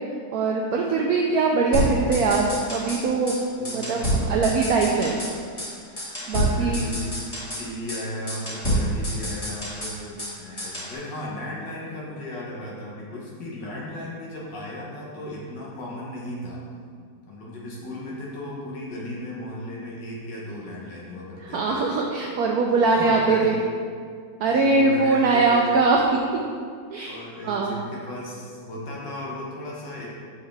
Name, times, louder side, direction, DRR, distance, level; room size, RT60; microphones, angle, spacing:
voice 1, 0.3-5.2 6.3-6.8 21.5-23.6 24.4-26.0 26.9-27.1 27.4-27.8, right 3 dB, 70° right, 0 dB, 0.9 m, -22 dB
sound 1, 1.7-3.0 3.3-3.4 3.6-5.3 5.6-5.7 6.0-7.6 7.9-8.0 8.3-10.3 10.6-10.9, equal, 20° left, 1.7 m, -27 dB
voice 2, 3.5-4.0 6.6-7.3 7.6-16.6 17.3-21.8 22.8-23.5 24.5-25.8 27.1-30.1, left 1 dB, 70° left, -5 dB, 1.7 m, -35 dB
7.4 x 5.6 x 3.4 m, 2.1 s
omnidirectional pair, 2.0 m